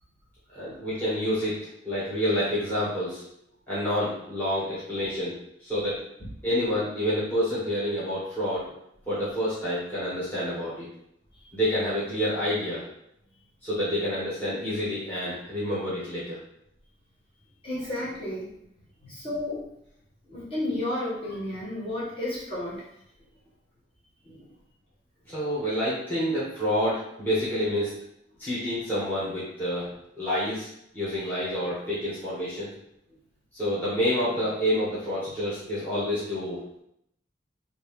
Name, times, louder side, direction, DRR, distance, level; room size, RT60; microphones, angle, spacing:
voice 1, 0.5-1.6 1.8-3.2 3.7-5.4 5.6-6.0 6.4-8.6 9.1-10.9 11.5-12.8 13.6-16.4 20.3-20.4 24.3-24.4 25.3-27.9 28.4-29.9 30.2-30.7 30.9-32.7 33.5-36.6, equal, 10° left, -11 dB, 1.1 m, -28 dB
voice 2, 17.6-18.5 19.0-19.6 20.3-22.8, left 1 dB, 30° left, -8 dB, 1.4 m, -32 dB
3.1 x 2.6 x 3.6 m, 0.76 s
head